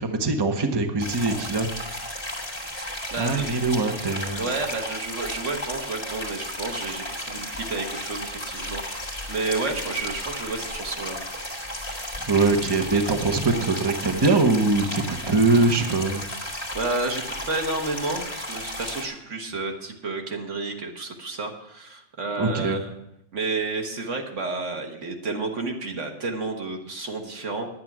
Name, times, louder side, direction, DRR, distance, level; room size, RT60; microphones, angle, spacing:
voice 1, 0.0-1.7 2.9-4.4 11.9-16.2 22.4-22.8, right 3 dB, 25° right, 5 dB, 0.9 m, -23 dB
sound 1, 1.0-19.1, left 1 dB, 20° left, 2.3 m, -34 dB
voice 2, 3.1-3.5 4.4-8.8 9.3-11.2 16.5-22.9 23.3-27.7, right 3 dB, 80° right, 3 dB, 1.8 m, -31 dB
9.9 x 9.6 x 6.0 m, 0.83 s
omnidirectional pair, 1.2 m